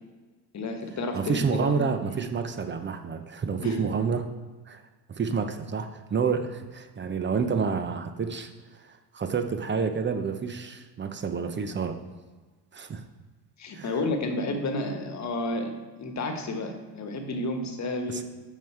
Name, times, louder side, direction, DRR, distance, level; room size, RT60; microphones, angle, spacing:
voice 1, 0.5-1.8 2.1-2.2 3.6-3.9 13.6-18.2, left 2 dB, 35° left, 5 dB, 1.4 m, -31 dB
voice 2, 1.1-4.3 4.7-4.8 5.1-12.0 12.7-13.0 13.7-13.9 18.1-18.2, right 5 dB, 25° right, 8 dB, 0.7 m, -29 dB
7.2 x 5.5 x 4.6 m, 1.3 s
hypercardioid pair, 75°, 48 cm